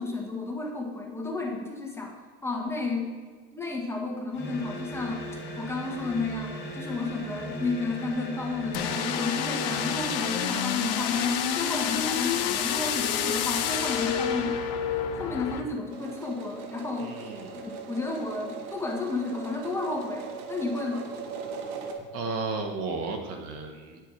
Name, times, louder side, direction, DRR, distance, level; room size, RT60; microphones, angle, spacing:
voice 1, 0.0-2.1 2.4-3.1 3.5-5.2 5.6-14.6 14.9-17.1 17.5-21.1, left 3 dB, 10° left, 0 dB, 1.4 m, -32 dB
sound 1, 4.3-10.3, equal, 35° left, 2.6 m, -38 dB
sound 2, 8.7-15.6, left 8 dB, 70° left, 0.9 m, -28 dB
sound 3, 15.9-21.9, right 5 dB, 85° right, 1.4 m, -39 dB
voice 2, 17.0-17.6 22.1-24.0, right 3 dB, 55° right, 4 dB, 1.4 m, -33 dB
8.9 x 8.0 x 4.8 m, 1.5 s
supercardioid pair, 130°, 30 cm